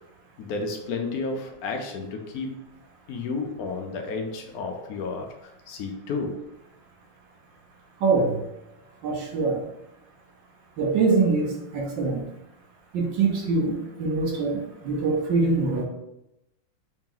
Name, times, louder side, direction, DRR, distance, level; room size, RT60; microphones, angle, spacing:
voice 1, 0.4-2.7 3.1-5.3 5.7-6.4, left 4 dB, 70° left, 3 dB, 0.8 m, -31 dB
voice 2, 8.0-8.4 9.0-9.6 10.8-12.2 12.9-15.8, right 4 dB, 65° right, 0 dB, 1.5 m, -24 dB
5.0 x 2.8 x 3.7 m, 0.88 s
omnidirectional pair, 2.3 m